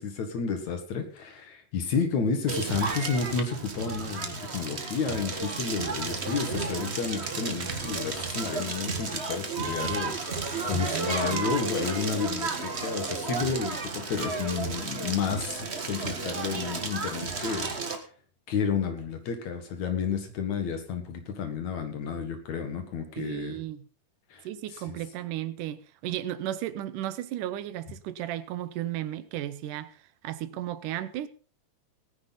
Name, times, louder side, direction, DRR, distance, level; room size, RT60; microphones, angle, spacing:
voice 1, 0.0-18.0 18.5-23.6 24.3-24.5 24.7-25.0, left 5 dB, 65° left, 3.0 m, -31 dB
Crackle, 2.5-18.0, right 4 dB, 40° right, 0.9 m, -33 dB
voice 2, 10.7-11.5 23.2-23.9 24.4-30.0 30.2-31.3, right 12 dB, 85° right, 2.4 m, -34 dB
18.5 x 9.9 x 4.1 m
omnidirectional pair, 3.6 m